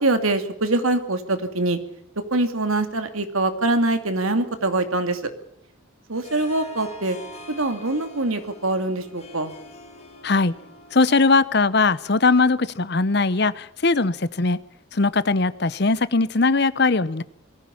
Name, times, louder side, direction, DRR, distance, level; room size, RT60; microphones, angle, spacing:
voice 1, 0.0-1.8 2.3-5.3 6.1-7.2 7.5-9.5, right 2 dB, 80° right, 2.5 m, -23 dB
Harp, 6.2-11.7, left 1 dB, 30° left, 4.4 m, -44 dB
voice 2, 10.2-10.5 10.9-14.6 14.9-17.2, left 3 dB, 50° left, 0.8 m, -20 dB
21.5 x 15.0 x 8.5 m
head